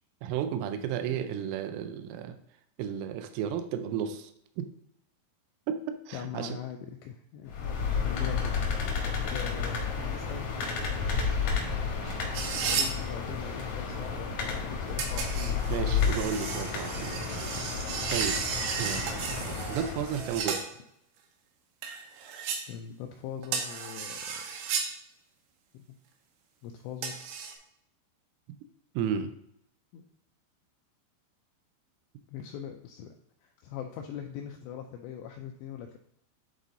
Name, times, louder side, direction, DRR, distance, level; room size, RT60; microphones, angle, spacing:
voice 1, 0.2-2.4 2.8-4.3 4.6-4.7 5.7-6.6 11.0-11.6 12.0-12.4 15.7-18.4 18.8-20.6 29.0-29.3, right 8 dB, 90° right, 9 dB, 3.2 m, -34 dB
voice 2, 6.1-9.9 10.1-10.8 12.6-16.2 22.7-24.4 25.7-25.8 26.6-27.2 29.9-30.1 32.3-33.1 33.4-36.0, left 9 dB, 90° left, 3 dB, 2.5 m, -42 dB
sound 1, 7.5-20.5, left 5 dB, 75° left, 1.7 m, -32 dB
sound 2, 12.3-12.9 15.0-20.7 21.8-22.6 23.4-24.9 27.0-27.5, right 6 dB, 75° right, 2.9 m, -34 dB
10.5 x 4.0 x 3.8 m, 0.73 s
omnidirectional pair, 5.6 m